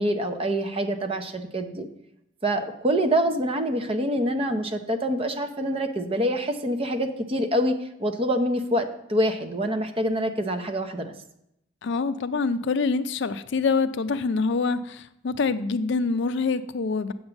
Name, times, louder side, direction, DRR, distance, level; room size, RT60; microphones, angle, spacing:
voice 1, 0.0-1.9 2.4-11.1, equal, 30° right, 6 dB, 0.7 m, -26 dB
voice 2, 11.8-17.1, left 4 dB, 55° left, 12 dB, 0.4 m, -25 dB
7.9 x 5.4 x 7.0 m, 0.80 s
head